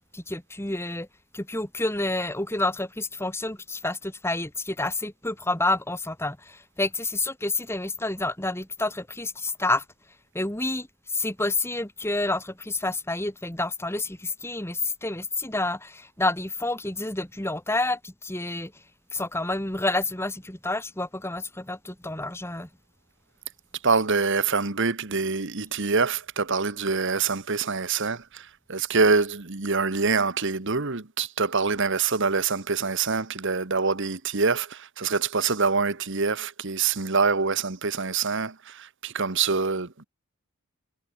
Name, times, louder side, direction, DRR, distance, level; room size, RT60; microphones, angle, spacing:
voice 1, 0.1-1.1 1.3-9.8 10.3-18.7 19.1-22.7, left 2 dB, 10° left, 2.1 m, -29 dB
voice 2, 23.8-40.0, right 4 dB, 60° right, 1.5 m, -25 dB
head